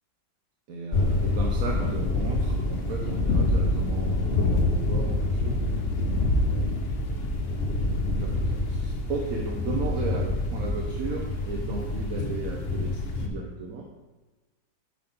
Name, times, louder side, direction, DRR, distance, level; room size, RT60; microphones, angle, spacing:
voice 1, 0.7-5.6 6.0-6.7 7.8-13.9, right 4 dB, 55° right, 0 dB, 1.3 m, -35 dB
sound 1, 0.9-13.3, left 2 dB, 40° left, 1.0 m, -26 dB
7.7 x 6.0 x 5.5 m, 1.2 s
omnidirectional pair, 1.9 m